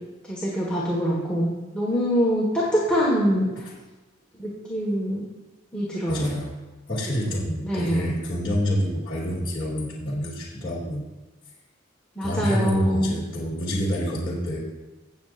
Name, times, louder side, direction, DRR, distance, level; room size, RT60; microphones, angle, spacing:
voice 1, 0.3-3.5 4.4-5.2 5.7-6.3 7.3-8.1 12.1-13.2, equal, 5° left, -6 dB, 1.6 m, -24 dB
voice 2, 6.1-6.5 6.9-11.1 12.2-14.6, equal, 25° left, -7 dB, 2.4 m, -27 dB
17.5 x 7.3 x 2.5 m, 1.2 s
head